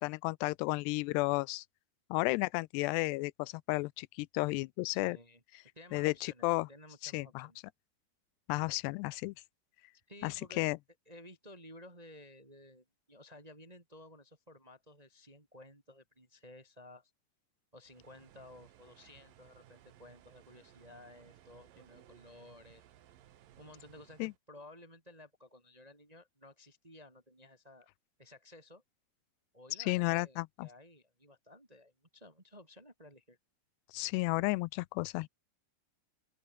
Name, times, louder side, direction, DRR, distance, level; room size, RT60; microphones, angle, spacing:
voice 1, 0.0-1.6 2.1-5.2 5.9-6.7 7.0-7.5 8.5-9.3 10.2-10.8 24.2-24.3 29.8-30.7 33.9-35.3, left 23 dB, 90° left, 2.7 m, -33 dB
voice 2, 4.9-5.4 5.7-7.6 10.1-10.6 11.0-17.1 17.7-22.8 23.6-27.9 28.2-28.8 29.5-33.4, left 1 dB, 15° right, 1.6 m, -55 dB
sound 1, 17.9-24.4, right 11 dB, 65° right, 3.0 m, -61 dB
open air
omnidirectional pair, 4.7 m